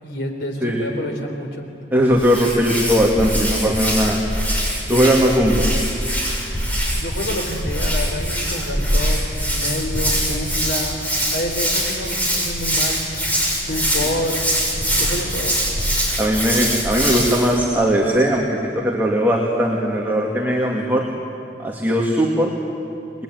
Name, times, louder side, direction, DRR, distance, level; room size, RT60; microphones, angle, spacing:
voice 1, 0.0-1.6 7.0-11.0 11.3-13.0 13.6-14.4 15.0-15.6, left 1 dB, 70° left, 3 dB, 4.2 m, -28 dB
voice 2, 1.9-4.2 4.9-5.7 16.2-21.1 21.6-22.5, equal, 10° right, -2 dB, 2.5 m, -19 dB
Hands, 2.1-17.5, equal, 10° left, 6.5 m, -23 dB
28.5 x 21.0 x 9.5 m, 2.9 s
head